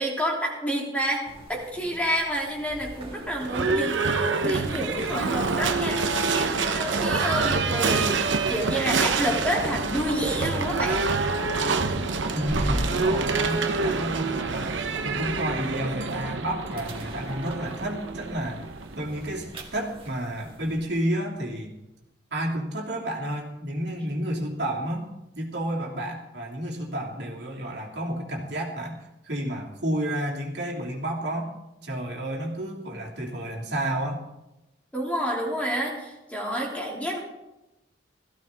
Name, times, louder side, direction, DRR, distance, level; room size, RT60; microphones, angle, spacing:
voice 1, 0.0-8.2 8.5-11.1 34.9-37.2, equal, 5° left, -2 dB, 2.9 m, -29 dB
sound 1, 1.2-20.9, right 1 dB, 30° right, 2.1 m, -41 dB
Livestock farm animals working animals / Bell, 3.4-19.3, right 4 dB, 75° right, 1.0 m, -27 dB
voice 2, 12.3-18.6 18.9-21.7 22.3-25.1 25.3-29.0 29.2-31.5 31.8-34.2, right 1 dB, 60° right, -1 dB, 2.9 m, -31 dB
18.0 x 15.0 x 3.6 m, 0.93 s
head